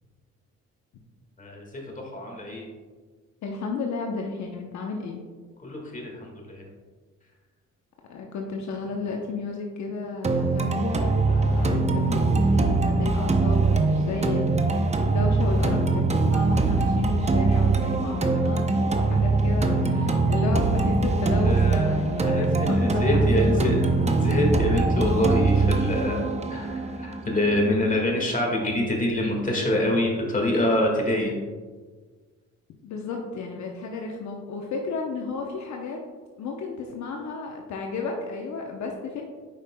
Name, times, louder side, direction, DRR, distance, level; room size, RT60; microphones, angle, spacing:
voice 1, 1.4-2.7 5.6-6.6 21.3-31.3, left 1 dB, 25° left, 0 dB, 1.7 m, -26 dB
voice 2, 3.4-5.2 8.1-24.0 32.8-36.0 36.4-39.2, left 4 dB, 65° left, 1 dB, 0.8 m, -32 dB
sound 1, 10.2-28.2, right 3 dB, 20° right, 0.6 m, -22 dB
8.8 x 5.3 x 2.2 m, 1.4 s
cardioid pair, 90°, 30 cm